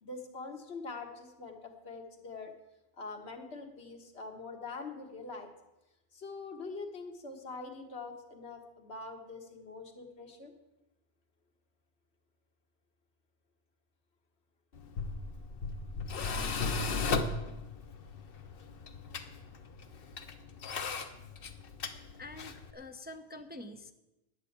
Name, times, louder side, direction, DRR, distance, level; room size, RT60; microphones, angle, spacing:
voice 1, 0.0-2.5 3.0-5.5 6.1-10.5, left 3 dB, 80° left, 4 dB, 1.7 m, -44 dB
Tools, 14.7-22.7, left 4 dB, 65° left, 1.1 m, -36 dB
voice 2, 22.2-23.9, left 1 dB, 10° right, 6 dB, 0.6 m, -46 dB
10.5 x 8.2 x 8.5 m, 0.97 s
omnidirectional pair, 1.1 m